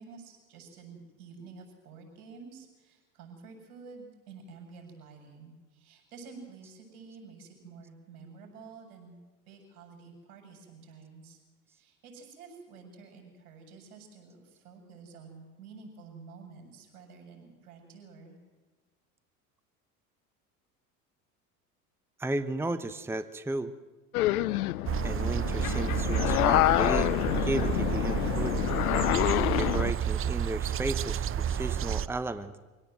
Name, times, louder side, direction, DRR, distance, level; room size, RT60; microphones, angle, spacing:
voice 1, 0.0-9.2 9.5-11.4 11.7-18.4, right 4 dB, 75° right, 2 dB, 7.0 m, -50 dB
voice 2, 22.2-23.7 25.0-27.2 27.4-28.6 29.3-32.6, right 2 dB, 5° right, 12 dB, 1.0 m, -34 dB
A Moaning Zombie, 24.1-29.9, left 17 dB, 80° left, 0.6 m, -27 dB
sound 1, 24.9-32.1, right 9 dB, 30° right, 0.7 m, -30 dB
24.5 x 17.0 x 7.9 m, 1.3 s
hypercardioid pair, 80°, 44 cm